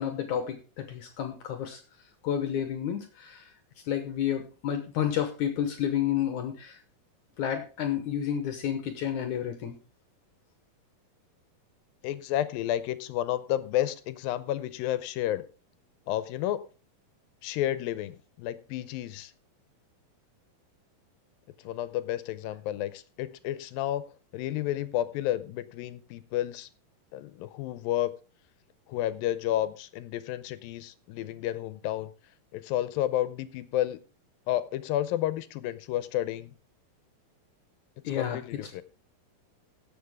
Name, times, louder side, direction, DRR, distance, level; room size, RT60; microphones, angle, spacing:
voice 1, 0.0-1.8 2.2-3.5 3.9-6.8 7.4-9.8 38.0-38.6, left 9 dB, 65° left, 7 dB, 2.2 m, -30 dB
voice 2, 12.0-15.5 16.1-16.6 17.4-19.3 21.6-26.7 27.1-28.1 28.9-32.1 32.5-34.0 34.5-36.5 38.1-38.8, left 13 dB, 85° left, 14 dB, 2.4 m, -31 dB
17.0 x 7.2 x 3.5 m, 0.34 s
omnidirectional pair, 4.1 m